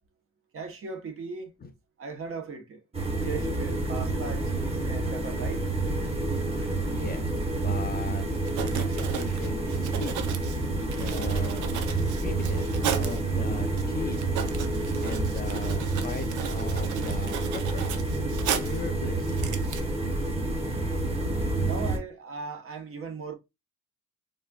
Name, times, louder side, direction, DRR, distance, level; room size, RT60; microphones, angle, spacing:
voice 1, 0.5-1.5 2.0-2.8 3.2-5.7 21.6-23.3, right 4 dB, 45° right, 0.9 m, -38 dB
sound 1, 2.9-22.0, right 2 dB, 20° right, 1.1 m, -29 dB
voice 2, 6.9-8.3 8.6-10.2 10.9-11.7 12.2-12.7 13.0-14.2 15.0-17.9 18.6-19.3, left 4 dB, 30° left, 0.6 m, -39 dB
Writing, 8.2-8.3 8.4-13.2 13.8-13.9 14.1-18.9 19.2-19.8, right 9 dB, 80° right, 0.6 m, -35 dB
4.1 x 2.5 x 2.2 m
cardioid pair, 90°, 30 cm